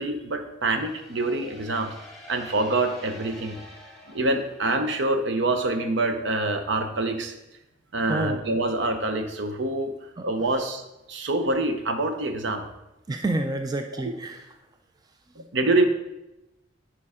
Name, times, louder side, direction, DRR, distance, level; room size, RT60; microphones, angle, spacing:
voice 1, 0.0-1.9 2.3-3.6 4.1-7.3 7.9-9.9 10.2-10.8 11.1-12.6 15.5-15.9, right 2 dB, 65° right, 7 dB, 0.8 m, -25 dB
sound 1, 0.7-5.4, left 1 dB, ahead, 1.5 m, -48 dB
voice 2, 8.1-8.4 10.2-10.3 10.6-10.7 13.1-14.5 15.4-15.5, right 2 dB, 20° right, 5 dB, 0.4 m, -29 dB
10.5 x 4.6 x 3.7 m, 0.96 s
head